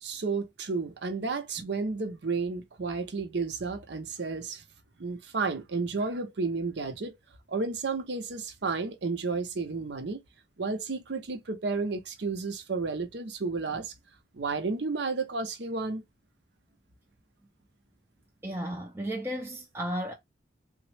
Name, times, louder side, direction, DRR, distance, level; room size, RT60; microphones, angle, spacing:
voice 1, 0.0-4.6 5.0-7.2 7.5-10.2 10.6-13.9 14.3-16.0, right 4 dB, 65° right, 0.6 m, -32 dB
voice 2, 18.4-20.1, equal, 10° right, 0.4 m, -34 dB
3.4 x 2.0 x 3.2 m
head